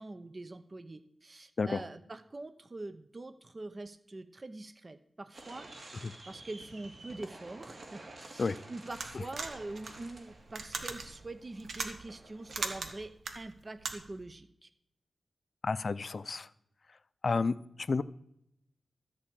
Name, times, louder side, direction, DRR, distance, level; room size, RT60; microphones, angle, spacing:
voice 1, 0.0-6.0 6.3-14.7, right 2 dB, 35° right, 11 dB, 0.7 m, -44 dB
sound 1, 5.3-13.0, right 2 dB, 60° right, 2.7 m, -51 dB
sound 2, 8.9-14.2, right 4 dB, 85° right, 1.3 m, -40 dB
voice 2, 15.6-16.5 17.2-17.6 17.9-18.0, left 4 dB, 55° left, 15 dB, 0.5 m, -30 dB
13.5 x 4.8 x 8.6 m, 0.76 s
wide cardioid pair, 80°, 0 cm